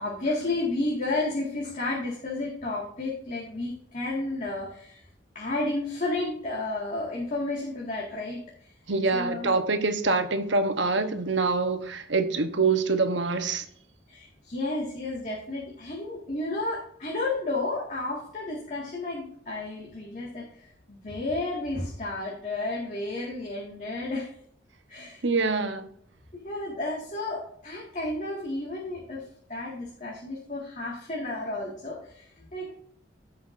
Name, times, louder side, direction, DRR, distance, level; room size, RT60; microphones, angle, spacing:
voice 1, 0.0-5.0 5.3-8.7 9.1-9.5 14.1-24.3 24.9-25.2 26.3-29.2 29.5-32.7, left 2 dB, 40° left, 2.0 m, -32 dB
voice 2, 8.9-13.6 25.0-25.9, right 3 dB, 80° right, 1.1 m, -25 dB
16.0 x 5.8 x 2.7 m
head